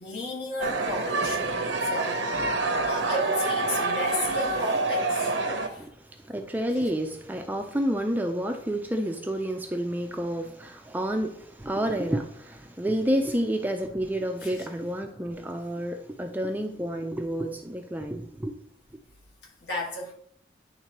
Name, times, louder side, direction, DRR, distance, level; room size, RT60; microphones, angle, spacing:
voice 1, 0.0-2.2 2.8-5.3 5.7-5.8 14.4-14.5 19.6-20.1, left 1 dB, 60° left, 1.9 m, -33 dB
sound 1, 0.6-5.7, right 2 dB, 85° right, 0.8 m, -27 dB
voice 2, 5.5-18.6, right 1 dB, 10° right, 0.4 m, -30 dB
9.9 x 3.6 x 3.0 m
head